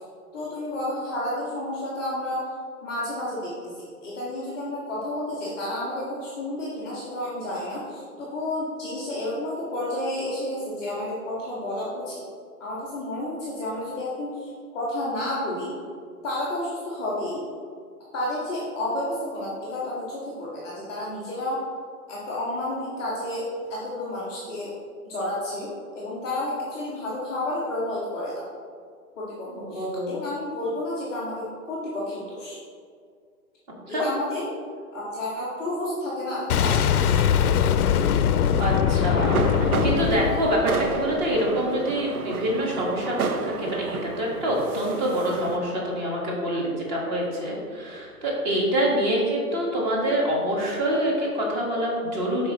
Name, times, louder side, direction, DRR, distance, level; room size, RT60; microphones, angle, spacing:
voice 1, 0.3-2.5 2.8-12.2 12.6-15.7 16.2-17.4 18.1-21.6 22.1-24.7 25.0-25.7 25.9-28.4 29.1-32.6 33.9-34.5 34.9-37.2, left 1 dB, ahead, -18 dB, 0.4 m, -31 dB
voice 2, 29.5-30.1 33.9-34.0 38.6-52.5, equal, 30° right, -2 dB, 1.7 m, -26 dB
Boom, 36.5-41.4, left 8 dB, 85° left, 0.6 m, -22 dB
sound 1, 39.2-45.6, right 4 dB, 75° right, 0.9 m, -31 dB
11.5 x 4.6 x 3.1 m, 2.1 s
hypercardioid pair, 155°, 44 cm